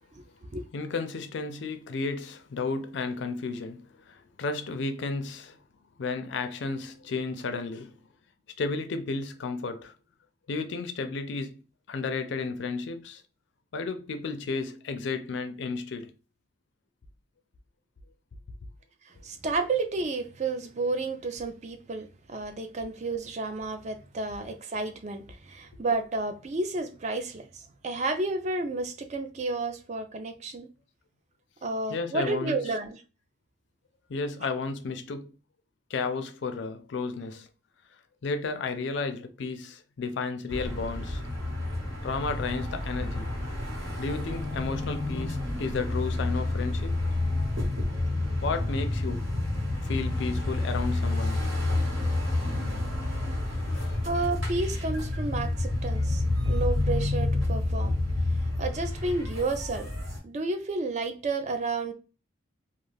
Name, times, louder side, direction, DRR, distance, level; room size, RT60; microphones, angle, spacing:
voice 1, 0.7-5.6 6.0-8.0 8.6-9.9 10.5-11.6 11.9-13.2 13.7-16.1 31.9-32.6 34.1-35.3 35.9-37.5 38.2-41.2 42.0-43.3 44.0-47.0 48.4-49.3 49.8-51.5 53.5-54.1, left 4 dB, 60° left, 0.4 m, -33 dB
voice 2, 19.1-30.7 31.6-33.0 53.8-59.9 60.2-61.9, right 3 dB, 35° right, 0.4 m, -31 dB
sound 1, 40.5-60.2, left 2 dB, 80° right, 1.3 m, -29 dB
2.3 x 2.3 x 3.1 m
head